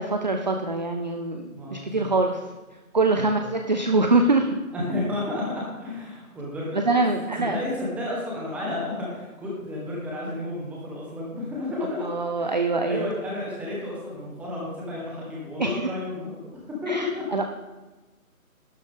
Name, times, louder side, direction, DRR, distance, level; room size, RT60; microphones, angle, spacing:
voice 1, 0.0-2.4 2.9-4.5 6.7-7.6 12.0-13.1 15.6-15.9 16.9-17.4, right 3 dB, 30° right, 5 dB, 0.5 m, -24 dB
voice 2, 1.5-2.0 3.1-3.4 4.7-7.0 7.4-12.1 12.4-16.4 16.8-17.2, left 2 dB, 5° right, -5 dB, 1.4 m, -32 dB
12.0 x 10.5 x 3.7 m, 1.2 s
figure-of-eight pair, 155°, 43 cm